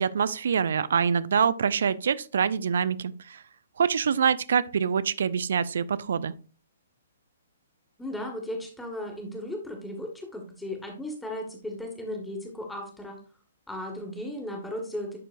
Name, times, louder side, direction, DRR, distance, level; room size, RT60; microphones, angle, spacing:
voice 1, 0.0-3.4 3.8-6.3, right 7 dB, 60° right, 17 dB, 0.5 m, -25 dB
voice 2, 8.0-13.2 13.7-15.2, left 1 dB, 5° left, 2 dB, 1.9 m, -36 dB
11.5 x 4.5 x 2.5 m, 0.37 s
figure-of-eight pair, 125°, 0 cm